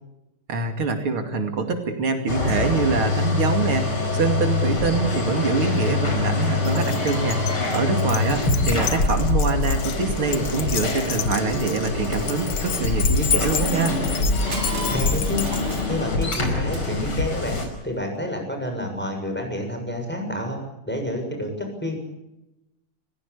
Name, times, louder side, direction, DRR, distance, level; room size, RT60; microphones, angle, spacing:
voice 1, 0.5-14.0, right 4 dB, 80° right, 5 dB, 3.4 m, -25 dB
sound 1, 2.3-17.7, left 3 dB, 90° left, 5.9 m, -24 dB
Keys jangling, 6.6-15.9, left 8 dB, 70° left, 1.9 m, -31 dB
Crushing, 14.5-17.4, right 5 dB, 50° right, 2.4 m, -40 dB
voice 2, 14.9-17.6 17.8-20.6 20.9-22.0, left 1 dB, 5° left, 3 dB, 7.0 m, -29 dB
30.0 x 16.0 x 8.4 m, 0.95 s
omnidirectional pair, 2.3 m